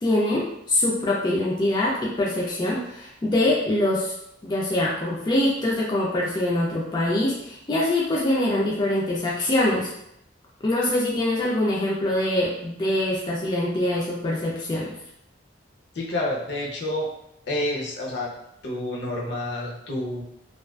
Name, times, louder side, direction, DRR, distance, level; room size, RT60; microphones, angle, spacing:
voice 1, 0.0-4.1 4.4-9.9 10.6-15.0, left 1 dB, 25° left, -5 dB, 0.4 m, -24 dB
voice 2, 15.9-17.1 17.5-18.3 18.6-20.2, left 1 dB, 60° left, -3 dB, 0.6 m, -28 dB
2.4 x 2.3 x 2.2 m, 0.78 s
head